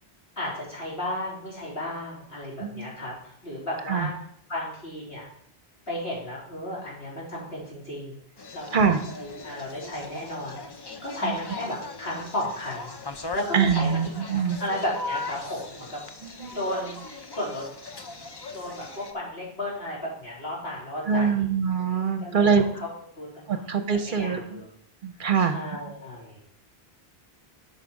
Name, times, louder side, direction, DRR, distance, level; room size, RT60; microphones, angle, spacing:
voice 1, 0.4-4.1 4.5-5.3 5.9-8.2 8.5-8.8 9.2-10.6 11.0-13.0 13.3-14.0 14.3-16.0 16.5-17.0 17.3-17.7 18.5-21.5 22.2-22.5 22.7-22.9 23.2-24.7 25.4-26.4, left 1 dB, 70° left, -6 dB, 3.6 m, -34 dB
voice 2, 2.6-2.9 3.9-4.1 8.7-9.0 11.2-11.3 13.5-14.6 16.4-16.5 21.1-22.6 23.5-24.6 25.0-25.6, right 6 dB, 55° right, 8 dB, 0.8 m, -24 dB
sound 1, 8.4-19.1, left 3 dB, 30° left, 0.6 m, -39 dB
8.2 x 5.6 x 5.2 m, 0.65 s
omnidirectional pair, 1.1 m